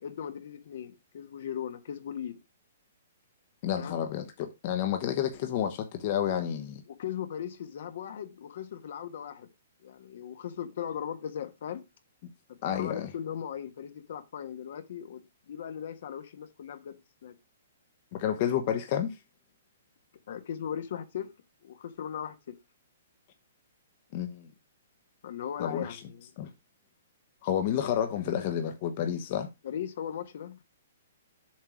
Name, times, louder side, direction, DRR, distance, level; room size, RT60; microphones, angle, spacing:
voice 1, 0.0-2.4 3.8-4.0 6.9-9.5 9.8-11.8 12.5-17.3 20.3-21.3 21.6-22.5 25.2-26.3 29.6-30.6, left 9 dB, 60° left, 1.2 m, -38 dB
voice 2, 3.6-6.8 12.6-13.1 18.1-19.2 24.1-24.5 25.6-26.0 26.4-26.5 27.4-29.5, left 10 dB, 45° left, 1.1 m, -30 dB
7.3 x 3.6 x 6.1 m
hypercardioid pair, 150°, 0 cm